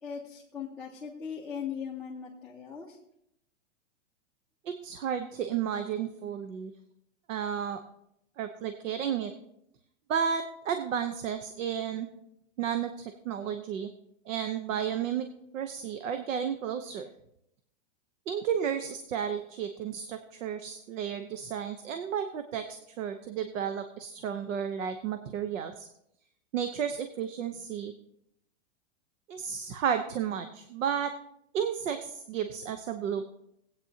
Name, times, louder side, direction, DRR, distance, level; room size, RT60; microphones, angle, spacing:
voice 1, 0.0-3.0, left 7 dB, 5° left, -9 dB, 1.0 m, -39 dB
voice 2, 4.6-6.7 7.3-7.8 8.4-9.3 10.1-12.1 12.6-13.9 14.3-15.3 15.5-17.1 18.3-22.6 23.0-25.9 26.5-27.9 29.3-31.1 31.5-33.2, right 8 dB, 85° right, 8 dB, 1.0 m, -32 dB
18.5 x 8.8 x 2.8 m, 0.78 s
supercardioid pair, 165°, 38 cm